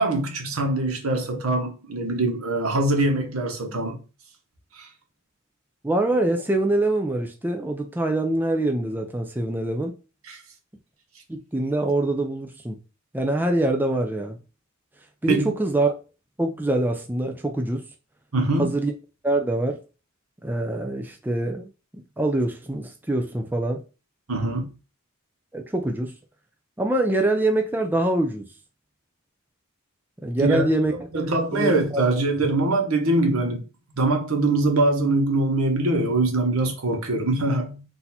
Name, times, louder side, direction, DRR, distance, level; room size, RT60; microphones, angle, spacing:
voice 1, 0.0-4.0 4.8-4.9 10.3-10.4 15.3-15.5 18.3-18.7 24.3-24.7 30.4-33.6 34.0-37.8, right 2 dB, 85° right, 1.2 m, -23 dB
voice 2, 5.8-9.9 11.3-12.8 13.1-14.4 15.2-15.9 16.4-17.8 18.6-18.9 19.2-19.8 20.4-23.8 25.5-26.1 26.8-28.4 30.2-30.9 31.5-32.0, right 2 dB, 10° right, 0.5 m, -24 dB
4.1 x 2.7 x 4.2 m
head